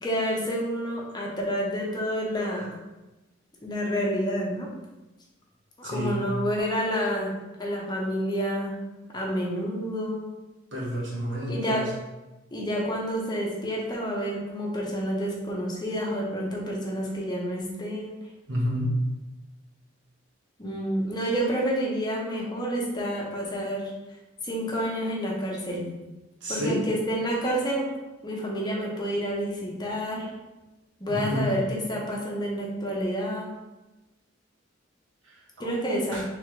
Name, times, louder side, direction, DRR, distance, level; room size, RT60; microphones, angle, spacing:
voice 1, 0.0-2.7 3.6-4.7 5.8-7.3 7.6-8.7 9.1-10.2 11.5-11.8 12.5-18.2 20.6-23.9 24.4-25.9 26.5-27.9 28.2-30.3 31.0-33.5 35.6-36.2, equal, 20° left, -3 dB, 0.7 m, -29 dB
voice 2, 5.8-6.2 10.7-11.9 18.5-18.9 26.4-26.8 31.1-31.4 36.1-36.2, equal, 70° right, -5 dB, 1.2 m, -29 dB
3.6 x 3.3 x 3.1 m, 1.1 s
head